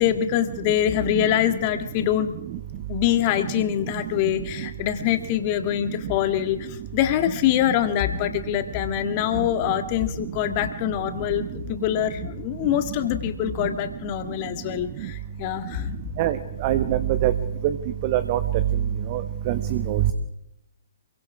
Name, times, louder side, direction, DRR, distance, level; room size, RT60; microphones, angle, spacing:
voice 1, 0.0-2.3 2.9-15.9, left 12 dB, 30° left, 8 dB, 1.8 m, -24 dB
voice 2, 16.6-17.3 18.0-18.4 19.1-19.2 19.5-20.0, right 13 dB, 35° right, 10 dB, 1.2 m, -23 dB
28.5 x 23.0 x 4.8 m, 0.87 s
figure-of-eight pair, 125°, 0 cm